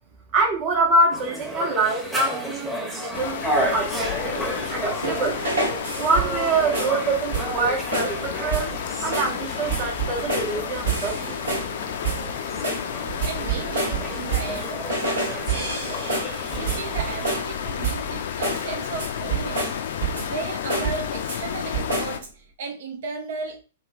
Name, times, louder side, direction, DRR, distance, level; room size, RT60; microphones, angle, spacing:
voice 1, 0.3-3.4 3.7-5.4 6.0-11.3, right 2 dB, 35° right, 0.9 m, -25 dB
sound 1, 1.1-17.4, right 1 dB, ahead, 0.8 m, -33 dB
sound 2, 3.1-22.2, left 8 dB, 55° left, 0.4 m, -32 dB
sound 3, 5.0-6.4 6.7-7.0 7.3-7.6 7.9-8.2 8.5-8.8 9.1-9.4 9.7-10.6 10.9-11.7 12.0-12.3 12.6-14.6 14.9-17.5 17.8-18.1 18.4-18.7 19.0-20.4 20.7-21.4 21.7-22.2, right 4 dB, 70° right, 1.1 m, -28 dB
voice 2, 13.2-19.8 20.2-23.6, right 4 dB, 50° right, 0.4 m, -35 dB
3.0 x 2.9 x 2.5 m
figure-of-eight pair, 105°, 0 cm